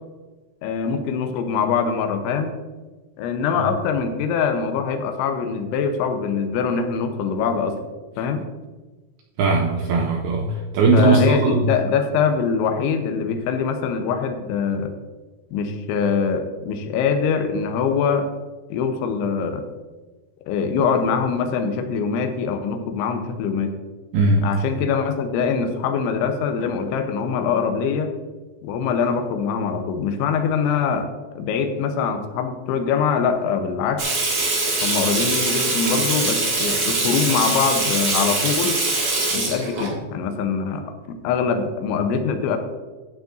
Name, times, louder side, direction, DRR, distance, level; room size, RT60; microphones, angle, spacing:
voice 1, 0.6-2.5 3.2-7.8 8.2-8.5 10.9-14.9 15.5-18.3 18.7-19.6 20.5-23.7 24.4-28.1 28.6-31.1 31.4-34.0 34.8-38.8 39.3-42.6, left 6 dB, 90° left, 6 dB, 3.2 m, -23 dB
voice 2, 9.4-10.5 10.7-11.6 24.1-24.4, right 3 dB, 80° right, 1 dB, 2.2 m, -18 dB
Water tap faucet / Sink (filling or washing), 34.0-39.9, right 2 dB, 50° right, 1.2 m, -23 dB
12.5 x 9.0 x 2.6 m, 1.3 s
omnidirectional pair, 5.3 m